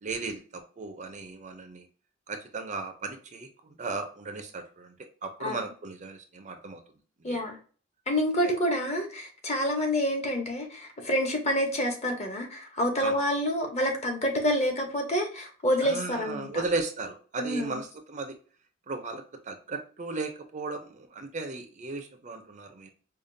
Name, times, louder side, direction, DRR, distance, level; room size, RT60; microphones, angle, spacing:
voice 1, 0.0-1.9 2.3-5.0 5.2-6.8 7.3-7.4 8.4-8.5 13.0-13.2 15.8-18.4 18.9-22.9, right 3 dB, 35° right, 6 dB, 0.5 m, -36 dB
voice 2, 7.2-7.6 8.1-16.6 17.4-17.8, equal, 35° left, 3 dB, 0.9 m, -28 dB
5.0 x 2.3 x 2.6 m, 0.40 s
head